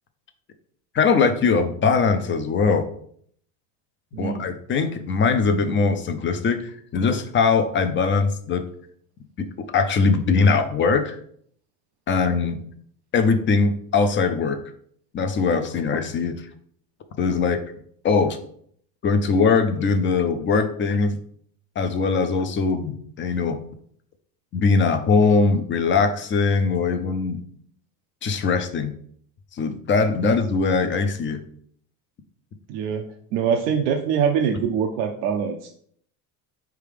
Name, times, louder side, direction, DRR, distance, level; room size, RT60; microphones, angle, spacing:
voice 1, 0.9-2.9 4.2-8.6 9.7-11.2 12.1-12.6 13.1-14.6 15.1-16.5 17.2-17.6 18.0-18.4 19.0-21.2 21.8-23.6 24.5-27.4 28.2-28.9 29.5-31.4, left 4 dB, 25° left, 8 dB, 0.4 m, -21 dB
voice 2, 4.1-4.5 30.2-30.3 32.7-35.7, right 7 dB, 80° right, 3 dB, 0.6 m, -24 dB
4.5 x 3.4 x 3.3 m, 0.63 s
supercardioid pair, 100°, 47 cm